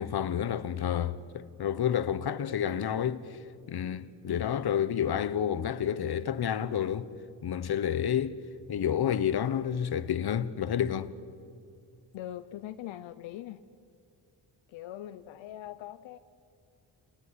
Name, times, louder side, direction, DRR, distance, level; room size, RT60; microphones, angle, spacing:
voice 1, 0.0-3.4 3.7-7.1 7.4-8.4 8.7-11.1, left 9 dB, 55° left, 1.2 m, -30 dB
voice 2, 12.1-13.6 14.7-16.2, left 13 dB, 85° left, 0.8 m, -41 dB
26.5 x 19.0 x 9.9 m
cardioid pair, 60°, 45 cm